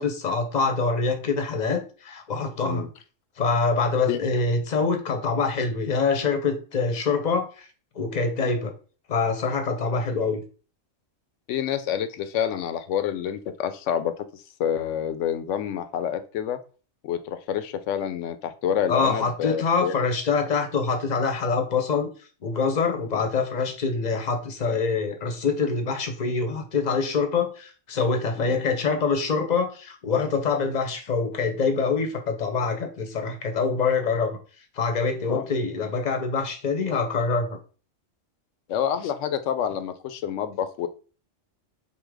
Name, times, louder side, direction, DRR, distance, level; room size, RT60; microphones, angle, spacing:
voice 1, 0.0-2.9 3.4-7.7 7.9-8.7 9.1-10.4 18.9-22.1 22.4-34.4 34.7-37.6, left 4 dB, 40° left, 6 dB, 0.7 m, -25 dB
voice 2, 11.5-16.6 17.0-19.9 28.4-28.6 35.3-35.4 38.7-40.9, left 9 dB, 75° left, 10 dB, 0.9 m, -28 dB
3.7 x 2.8 x 4.8 m, 0.37 s
omnidirectional pair, 1.3 m